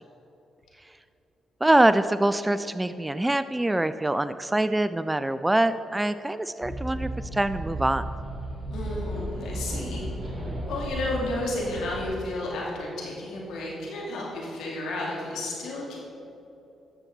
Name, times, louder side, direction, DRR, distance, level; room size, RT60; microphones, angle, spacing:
voice 1, 1.6-8.0, right 1 dB, 15° right, 13 dB, 0.4 m, -24 dB
sound 1, 6.6-12.0, right 1 dB, 30° right, 2.1 m, -34 dB
voice 2, 8.7-10.0 10.6-16.0, left 2 dB, 80° left, -3 dB, 2.5 m, -32 dB
12.5 x 7.3 x 4.0 m, 2.9 s
supercardioid pair, 55°, 0 cm